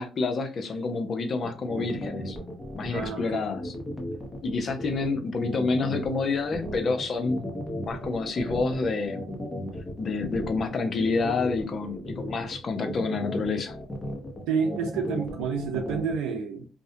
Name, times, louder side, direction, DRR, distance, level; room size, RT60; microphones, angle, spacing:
voice 1, 0.0-2.4 2.7-3.7 4.4-7.5 7.9-9.2 10.0-13.8, left 4 dB, 50° left, 0.6 m, -28 dB
sound 1, 1.4-16.2, equal, 25° left, 0.9 m, -36 dB
voice 2, 2.9-3.4 14.5-16.7, right 6 dB, 90° right, 0.5 m, -29 dB
2.5 x 2.1 x 2.7 m
supercardioid pair, 65°, 0 cm